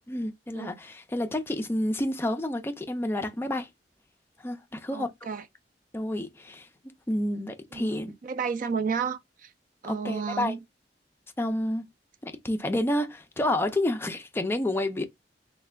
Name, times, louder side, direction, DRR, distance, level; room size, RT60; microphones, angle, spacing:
voice 1, 0.1-3.7 4.4-5.1 5.9-6.7 7.1-8.1 9.9-10.6 11.4-11.9 12.2-15.0, left 1 dB, 15° left, 0.4 m, -29 dB
voice 2, 4.9-5.4 7.7-9.5 9.8-10.6, right 6 dB, 50° right, 0.4 m, -32 dB
3.2 x 2.2 x 3.4 m
head